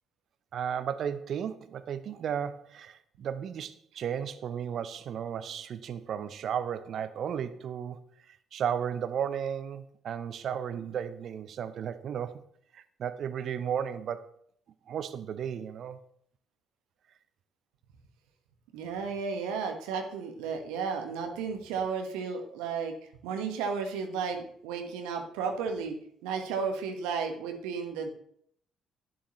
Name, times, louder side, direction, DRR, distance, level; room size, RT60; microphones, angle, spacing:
voice 1, 0.5-8.0 8.3-12.4 12.7-14.3 14.9-16.0, right 8 dB, 55° right, 0.7 m, -34 dB
voice 2, 18.7-22.9 23.2-26.0 26.2-28.1, right 5 dB, 70° right, 1.4 m, -33 dB
11.5 x 10.0 x 3.2 m
figure-of-eight pair, 45°, 0 cm